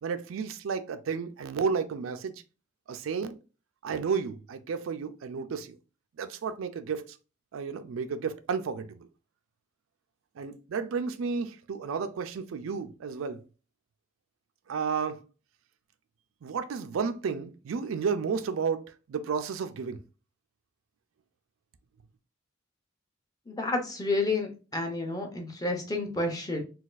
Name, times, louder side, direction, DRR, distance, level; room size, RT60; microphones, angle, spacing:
voice 1, 0.0-2.3 2.9-3.4 3.8-5.8 6.2-7.2 7.5-9.1 10.4-13.4 14.7-15.2 16.4-20.0, right 5 dB, 80° right, 0.4 m, -32 dB
voice 2, 23.5-26.6, left 2 dB, 20° left, 0.6 m, -30 dB
4.0 x 2.3 x 2.4 m
head